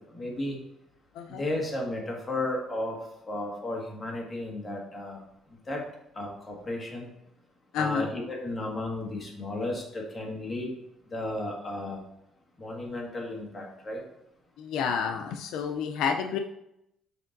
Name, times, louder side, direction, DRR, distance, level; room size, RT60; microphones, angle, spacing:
voice 1, 0.1-0.6 1.3-3.0 3.2-5.2 5.7-5.8 6.1-7.1 7.7-10.7 11.1-12.0 12.6-14.0, left 1 dB, 25° left, -1 dB, 1.7 m, -33 dB
voice 2, 7.7-8.1 14.6-16.4, left 6 dB, 85° left, 5 dB, 0.4 m, -29 dB
6.8 x 5.9 x 2.6 m, 0.82 s
cardioid pair, 125°, 0 cm